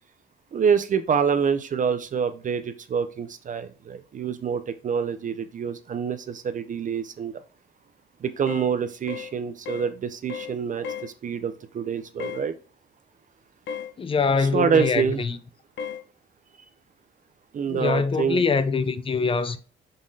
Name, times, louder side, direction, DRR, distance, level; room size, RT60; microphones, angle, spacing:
voice 1, 0.5-7.3 8.2-12.5 14.5-15.2 17.5-18.4, right 7 dB, 40° right, 0.4 m, -26 dB
sound 1, 8.5-8.7 9.1-9.3 9.7-9.9 10.3-10.5 10.8-11.1 12.2-12.4 13.7-13.9 14.7-15.0 15.8-16.0, left 7 dB, 70° left, 0.6 m, -34 dB
voice 2, 14.0-15.4 17.7-19.6, left 5 dB, 25° left, 0.5 m, -24 dB
5.2 x 3.6 x 2.7 m
cardioid pair, 90°, 20 cm